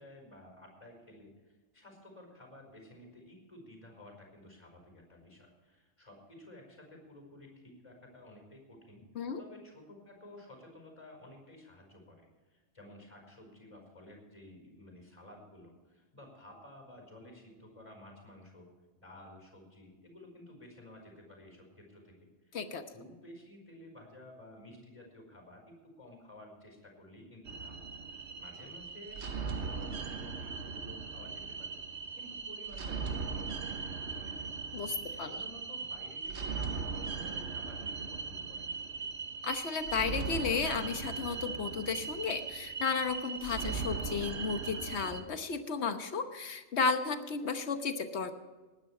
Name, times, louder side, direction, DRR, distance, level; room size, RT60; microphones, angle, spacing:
voice 1, 0.0-9.0 9.4-18.7 19.0-22.2 22.4-22.6 22.9-34.5 35.1-39.1, left 1 dB, 25° left, 1 dB, 5.2 m, -53 dB
sound 1, 27.4-45.2, right 5 dB, 80° right, 1.3 m, -39 dB
voice 2, 34.7-35.3 39.4-48.3, left 5 dB, 75° left, 8 dB, 1.3 m, -33 dB
19.0 x 9.9 x 4.8 m, 1.3 s
omnidirectional pair, 1.1 m